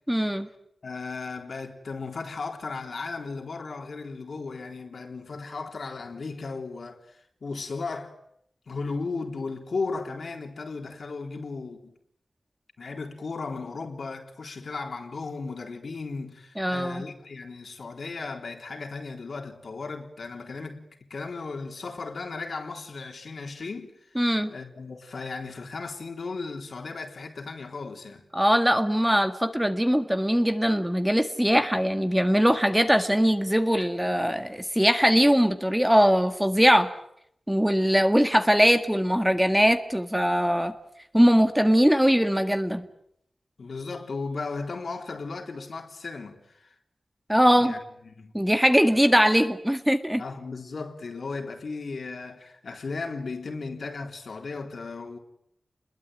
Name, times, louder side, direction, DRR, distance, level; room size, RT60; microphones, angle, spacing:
voice 1, 0.1-0.5 16.6-17.0 24.1-24.5 28.3-36.9 37.5-40.7 41.1-42.9 47.3-47.7 48.3-50.2, equal, 5° right, 1.8 m, -21 dB
voice 2, 0.8-8.2 8.7-11.9 12.8-24.2 24.5-28.2 43.6-46.8 47.6-48.3 50.2-55.2, left 4 dB, 70° left, 3.8 m, -36 dB
30.0 x 21.5 x 9.2 m
wide cardioid pair, 100°, 0 cm